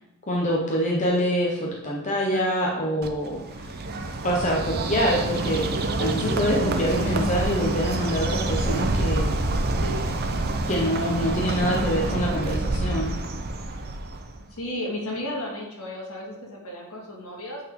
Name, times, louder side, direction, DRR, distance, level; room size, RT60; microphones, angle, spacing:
voice 1, 0.3-3.7 4.2-5.7 6.0-9.3 9.8-10.0 10.7-13.2, equal, 35° left, -2 dB, 0.8 m, -25 dB
Bird, 3.0-14.4, right 2 dB, 45° right, 0.6 m, -27 dB
voice 2, 14.5-17.6, left 1 dB, 70° left, -2 dB, 1.8 m, -33 dB
8.8 x 3.7 x 3.6 m, 0.92 s
head